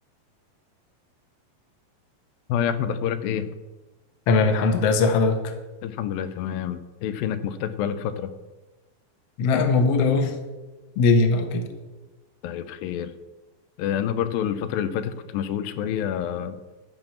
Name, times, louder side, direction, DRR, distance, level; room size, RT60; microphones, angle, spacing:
voice 1, 2.5-3.5 5.8-8.3 12.4-13.1 13.8-16.6, left 9 dB, 90° left, 11 dB, 2.5 m, -28 dB
voice 2, 4.3-5.5 9.4-10.4 11.0-11.7, left 4 dB, 65° left, 6 dB, 1.7 m, -20 dB
11.5 x 5.3 x 7.2 m, 1.2 s
omnidirectional pair, 4.0 m